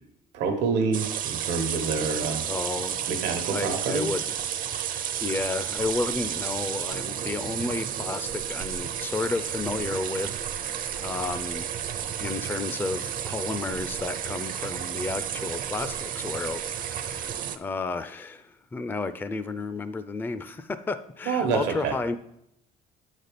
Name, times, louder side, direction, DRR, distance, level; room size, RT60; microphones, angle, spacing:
voice 1, 0.3-2.5 3.1-4.1 21.3-22.0, right 5 dB, 90° right, 4 dB, 1.0 m, -27 dB
sound 1, 0.9-17.6, right 9 dB, 55° right, 0.5 m, -32 dB
voice 2, 2.4-3.0 3.5-4.2 4.8-11.7 12.2-22.2, left 3 dB, 10° left, 11 dB, 0.3 m, -32 dB
8.4 x 4.1 x 5.0 m, 0.77 s
cardioid pair, 110°, 17 cm